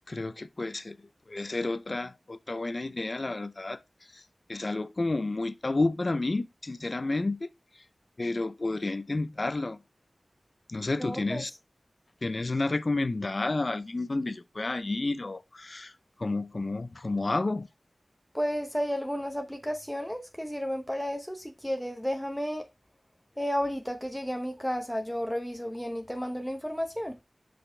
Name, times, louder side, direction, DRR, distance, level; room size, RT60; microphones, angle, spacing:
voice 1, 0.1-1.0 1.3-3.8 4.5-7.5 8.2-9.8 10.7-11.5 12.2-15.9 16.2-17.7, left 2 dB, 50° left, 0.6 m, -30 dB
voice 2, 11.0-11.6 18.3-22.7 23.4-27.2, equal, 5° left, 0.9 m, -32 dB
6.0 x 5.0 x 3.3 m
wide cardioid pair, 50°, 0 cm